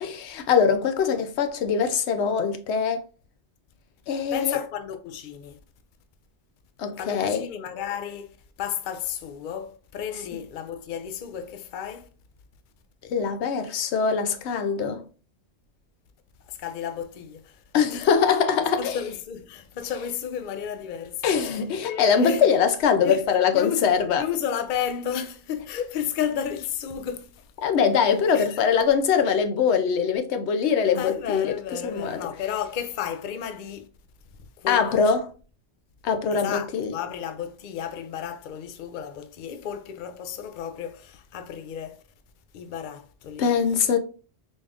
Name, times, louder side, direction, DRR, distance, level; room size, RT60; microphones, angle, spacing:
voice 1, 0.0-3.0 4.1-4.6 6.8-7.5 13.1-15.0 17.7-19.0 21.2-24.2 27.6-32.3 34.7-35.3 36.0-36.9 43.4-44.0, left 6 dB, 85° left, 0.9 m, -23 dB
voice 2, 4.3-5.6 7.0-12.1 16.5-17.6 17.9-18.1 18.8-22.5 23.0-23.2 23.5-27.4 28.3-28.6 30.9-33.9 34.6-34.8 36.3-42.0 42.5-43.5, left 8 dB, 55° left, 0.6 m, -32 dB
4.1 x 2.5 x 3.4 m
omnidirectional pair, 1.1 m